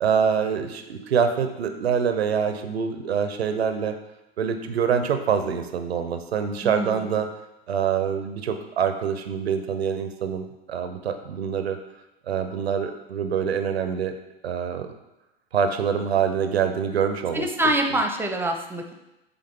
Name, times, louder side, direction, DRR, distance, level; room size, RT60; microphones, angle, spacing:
voice 1, 0.0-4.0 4.4-7.3 7.7-11.8 12.3-14.2 14.4-14.9 15.5-17.5, right 7 dB, 90° right, 7 dB, 0.7 m, -25 dB
voice 2, 6.6-7.1 17.3-18.9, right 1 dB, 5° right, 4 dB, 0.7 m, -25 dB
7.8 x 3.7 x 3.6 m, 0.96 s
hypercardioid pair, 95°, 30 cm